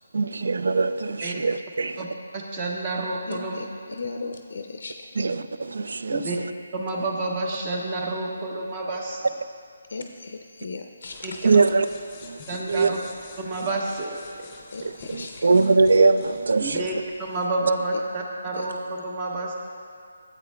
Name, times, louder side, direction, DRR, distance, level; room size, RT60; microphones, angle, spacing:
voice 1, 0.1-2.0 5.2-6.3 11.4-11.9 12.2-12.4 12.7-12.9 15.1-16.9, right 4 dB, 70° right, 12 dB, 0.3 m, -21 dB
voice 2, 2.3-3.6 6.1-6.4 6.7-9.3 11.2-11.6 12.5-13.0 13.4-14.2 16.6-19.5, right 2 dB, 30° right, -1 dB, 1.1 m, -29 dB
voice 3, 3.3-5.4 9.9-11.3 14.7-15.5 17.9-18.0 18.5-18.7, left 3 dB, 65° left, 4 dB, 0.4 m, -36 dB
sound 1, 11.1-17.5, left 4 dB, 20° left, 0.6 m, -47 dB
12.0 x 8.2 x 2.2 m, 2.3 s
figure-of-eight pair, 155°, 0 cm